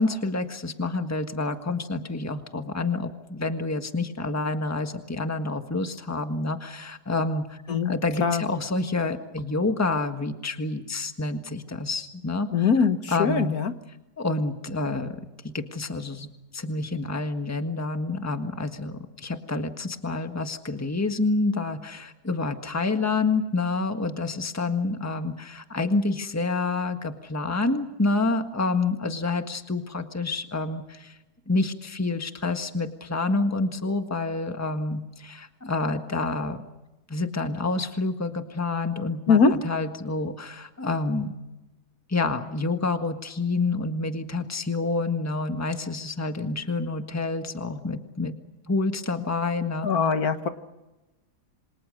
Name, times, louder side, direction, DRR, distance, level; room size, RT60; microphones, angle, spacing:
voice 1, 0.0-7.6 7.8-12.7 13.1-13.5 14.2-15.2 15.5-31.2 31.5-36.6 37.1-41.3 42.1-48.3 48.7-49.9 50.2-50.5, left 3 dB, 10° left, 7 dB, 1.5 m, -28 dB
voice 2, 12.5-13.7 39.3-39.6 49.8-50.5, left 5 dB, 65° left, 9 dB, 1.8 m, -22 dB
28.5 x 25.5 x 6.5 m, 1.1 s
omnidirectional pair, 1.7 m